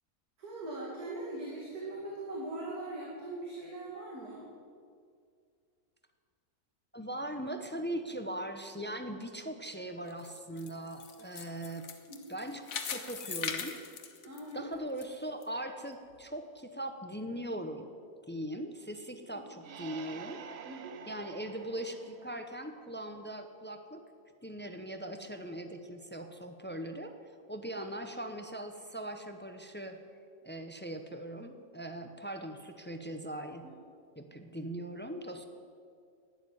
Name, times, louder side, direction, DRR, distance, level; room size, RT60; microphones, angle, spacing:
voice 1, 0.4-4.5 12.1-12.4 14.2-14.7 19.2-19.4 20.7-21.0 33.6-33.8, right 2 dB, 85° right, -3 dB, 2.7 m, -41 dB
voice 2, 6.9-11.9 12.3-13.8 14.5-17.9 18.3-20.4 21.1-24.0 24.4-30.0 30.4-33.7 34.2-35.5, right 1 dB, 10° left, 7 dB, 0.6 m, -40 dB
sound 1, 10.1-15.0 15.4-15.5 16.1-16.2, left 6 dB, 65° left, 1.5 m, -40 dB
sound 2, 19.6-23.2, right 7 dB, 55° right, 0.9 m, -49 dB
11.5 x 10.5 x 9.5 m, 2.3 s
omnidirectional pair, 1.6 m